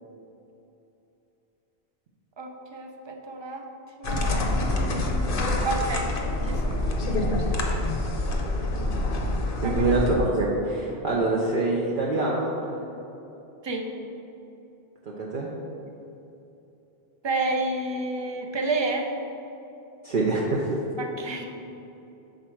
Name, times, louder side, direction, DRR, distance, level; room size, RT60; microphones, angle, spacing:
voice 1, 2.4-3.7 4.0-4.4 4.7-6.1 6.4-6.9 9.6-9.8 13.6-13.9 17.2-19.1 21.0-21.5, right 2 dB, 35° right, 3 dB, 0.4 m, -30 dB
sound 1, 4.0-10.1, left 2 dB, 60° left, 0.9 m, -26 dB
voice 2, 9.6-12.5 15.2-15.5 20.0-20.8, right 2 dB, 60° right, -3 dB, 0.8 m, -25 dB
6.6 x 4.2 x 4.5 m, 2.9 s
omnidirectional pair, 1.1 m